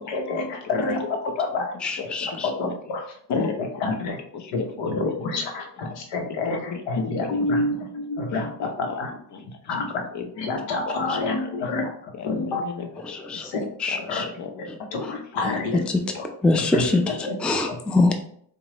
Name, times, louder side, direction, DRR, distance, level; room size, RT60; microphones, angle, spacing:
voice 1, 0.1-1.0 1.4-1.7 2.4-3.0 3.3-3.4 3.8-4.2 4.5-6.6 6.9-8.5 9.0-9.1 9.7-9.8 10.4-11.9 12.2-12.6 13.4-13.7 14.1-14.2 14.9-15.8 16.7-16.8 17.3-17.4, left 3 dB, 85° left, 3 dB, 0.9 m, -27 dB
voice 2, 1.0-1.7 2.0-2.4 3.3-5.0 5.3-5.4 6.3-6.8 7.2-7.4 7.7-7.8 8.3-9.6 10.1-11.2 12.1-13.4 13.9-14.8 15.5-15.8 16.1-16.2 16.6-16.7 17.7-17.8, left 5 dB, 40° left, 5 dB, 0.7 m, -36 dB
voice 3, 1.8-2.5 13.1-13.5 13.8-14.3 15.0-15.1 15.4-15.5 15.9-16.0 16.4-18.1, left 2 dB, 5° left, 5 dB, 0.4 m, -24 dB
4.6 x 2.3 x 2.9 m, 0.62 s
supercardioid pair, 70°, 44 cm